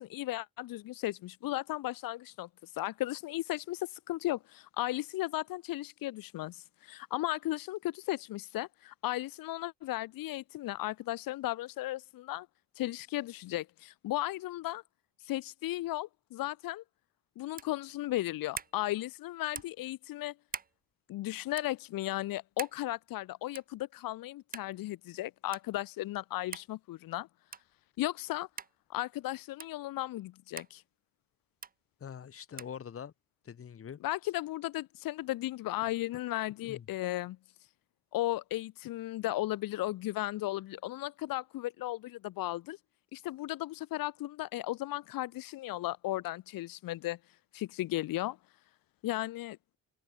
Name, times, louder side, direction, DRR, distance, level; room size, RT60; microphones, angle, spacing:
voice 1, 0.0-12.5 12.8-14.8 15.2-16.8 17.4-20.3 21.1-27.3 28.0-28.5 28.9-30.8 34.0-37.4 38.1-42.8 43.1-47.2 47.5-48.4 49.0-49.6, left 16 dB, 90° left, 2.7 m, -35 dB
sound 1, 17.5-17.8 18.5-18.8 19.5-19.8 20.5-20.7 21.5-21.7 22.6-22.8 23.5-23.8 24.5-24.7 25.5-25.6 26.5-26.7 27.5-27.7 28.6-28.7 29.6-29.7 30.6-30.7 31.6-31.7 32.6-32.8, right 6 dB, 25° right, 1.2 m, -42 dB
voice 2, 32.0-33.1 33.4-34.0 35.8-35.9 36.6-36.9, left 8 dB, 40° left, 4.5 m, -44 dB
open air
cardioid pair, 135°, 33 cm